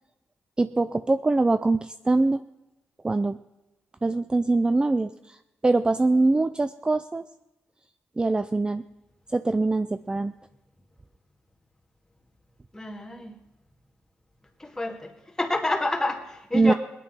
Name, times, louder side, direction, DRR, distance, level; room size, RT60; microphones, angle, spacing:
voice 1, 0.6-2.4 3.0-3.4 4.0-5.4 5.6-7.2 8.2-8.8 9.3-10.3 16.5-16.7, right 2 dB, 20° right, 12 dB, 0.5 m, -23 dB
voice 2, 12.7-13.3 14.6-15.1 15.4-16.7, left 2 dB, 10° left, 1 dB, 2.2 m, -28 dB
18.5 x 10.0 x 5.6 m, 0.95 s
cardioid pair, 70°, 4 cm